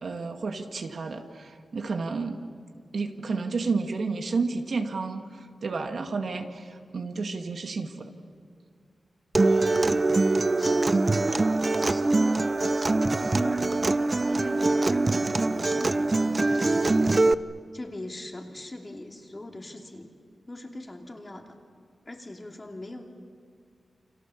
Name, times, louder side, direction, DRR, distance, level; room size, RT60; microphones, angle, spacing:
voice 1, 0.0-2.4 2.9-8.1, right 4 dB, 65° right, 4 dB, 2.0 m, -31 dB
Acoustic guitar, 9.3-17.3, right 2 dB, 30° right, 0.6 m, -23 dB
voice 2, 9.4-10.2 10.6-12.4 13.0-17.3 17.7-20.1 20.5-21.6 22.0-23.0, left 1 dB, 25° left, 2 dB, 2.9 m, -41 dB
29.0 x 26.5 x 7.2 m, 2.2 s
wide cardioid pair, 120°, 0 cm